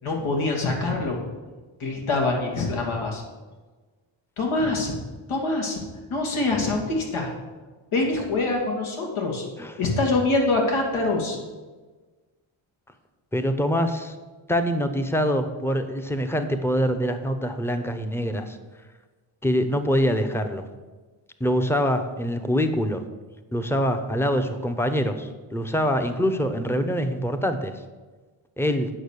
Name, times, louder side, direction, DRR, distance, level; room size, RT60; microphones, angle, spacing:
voice 1, 0.0-1.2 1.8-3.2 4.4-4.9 5.3-5.8 6.1-7.3 7.9-9.4 9.8-11.4, left 2 dB, 80° left, 0 dB, 2.6 m, -24 dB
voice 2, 13.3-14.1 14.5-18.6 19.4-20.6 21.4-23.0 23.5-27.7 28.6-28.9, equal, 5° left, 7 dB, 0.9 m, -24 dB
8.8 x 6.3 x 6.6 m, 1.3 s
cardioid pair, 95°, 48 cm